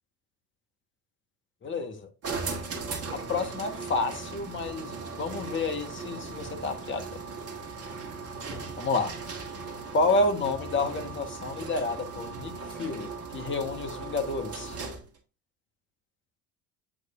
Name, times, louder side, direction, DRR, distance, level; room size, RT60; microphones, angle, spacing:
voice 1, 1.6-2.1 3.1-7.2 8.8-9.2 9.9-14.8, left 3 dB, 25° left, 1.3 m, -30 dB
sound 1, 2.2-15.2, right 4 dB, 35° right, 1.6 m, -38 dB
8.0 x 5.0 x 2.5 m
figure-of-eight pair, 65°, 44 cm